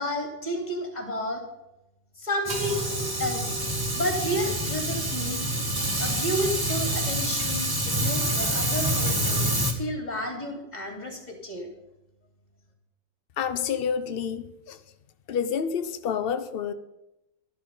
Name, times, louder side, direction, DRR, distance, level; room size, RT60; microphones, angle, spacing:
voice 1, 0.0-1.4 2.2-3.7 3.9-5.4 6.0-11.7, equal, 20° left, 2.9 m, -31 dB
Fire, 2.4-9.7, right 1 dB, 15° right, 1.2 m, -27 dB
sound 1, 2.5-6.1, right 5 dB, 70° right, 2.0 m, -41 dB
voice 2, 13.4-14.8 15.3-16.7, left 7 dB, 90° left, 0.5 m, -29 dB
12.5 x 11.0 x 5.4 m
omnidirectional pair, 2.0 m